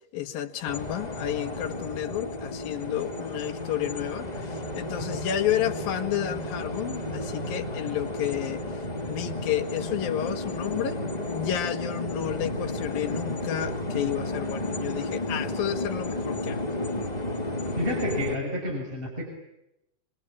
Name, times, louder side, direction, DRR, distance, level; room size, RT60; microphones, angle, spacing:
voice 1, 0.0-16.6, left 11 dB, 70° left, 7 dB, 3.1 m, -31 dB
sound 1, 0.6-18.4, left 1 dB, 10° left, 2.2 m, -32 dB
voice 2, 17.8-19.2, left 1 dB, 10° right, 1 dB, 6.2 m, -30 dB
26.5 x 25.5 x 8.6 m, 0.85 s
omnidirectional pair, 4.5 m